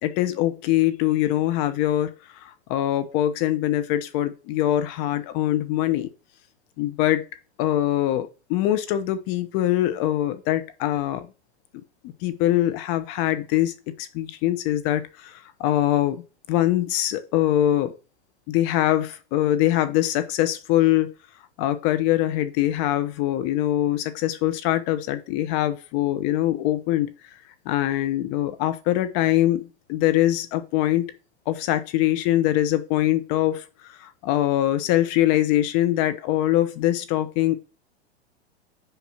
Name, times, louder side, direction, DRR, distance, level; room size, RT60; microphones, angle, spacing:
voice 1, 0.0-6.1 6.8-7.2 7.6-11.3 12.2-16.2 16.5-17.9 18.5-21.1 21.6-27.1 27.6-31.1 31.5-37.5, left 13 dB, 45° left, 0.9 m, -23 dB
5.2 x 4.6 x 5.7 m
hypercardioid pair, 110°, 33 cm